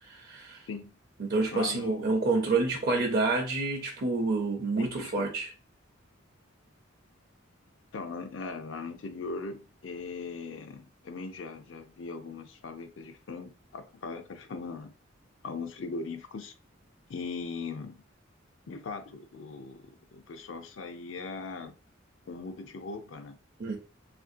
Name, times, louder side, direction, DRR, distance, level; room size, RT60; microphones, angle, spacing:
voice 1, 0.1-0.6 1.2-5.5 23.6-23.8, right 3 dB, 50° right, 0.5 m, -28 dB
voice 2, 1.5-2.2 2.9-3.0 4.7-5.3 7.9-14.9 15.4-16.5 17.1-18.0 18.7-21.7 22.3-23.4, left 4 dB, 70° left, 0.4 m, -39 dB
3.2 x 2.5 x 2.5 m
head